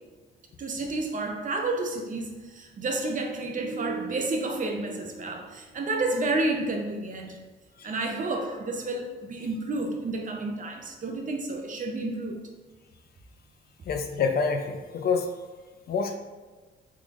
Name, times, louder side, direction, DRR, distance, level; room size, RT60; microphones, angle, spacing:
voice 1, 0.6-7.4 7.8-12.4, right 2 dB, 40° right, 2 dB, 0.6 m, -30 dB
voice 2, 13.9-15.3 15.9-16.1, left 5 dB, 50° left, 5 dB, 0.4 m, -26 dB
3.7 x 3.1 x 2.5 m, 1.3 s
cardioid pair, 90°, 20 cm